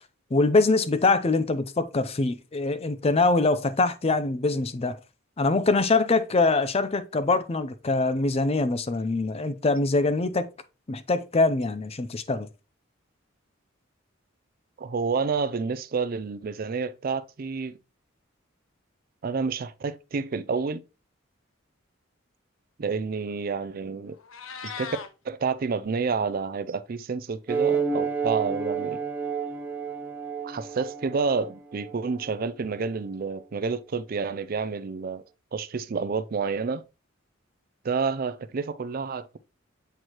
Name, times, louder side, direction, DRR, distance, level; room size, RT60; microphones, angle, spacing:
voice 1, 0.3-5.0 5.4-10.5 10.9-12.5, left 3 dB, 30° left, 0.5 m, -23 dB
voice 2, 14.8-17.8 19.2-20.8 22.8-24.2 24.6-25.0 25.2-29.0 30.4-35.2 35.5-36.8 37.8-39.4, right 5 dB, 45° right, 0.4 m, -29 dB
Meow, 24.1-25.1, left 6 dB, 80° left, 0.8 m, -38 dB
sound 1, 27.5-32.4, right 5 dB, 5° right, 0.8 m, -30 dB
7.9 x 4.5 x 2.9 m
head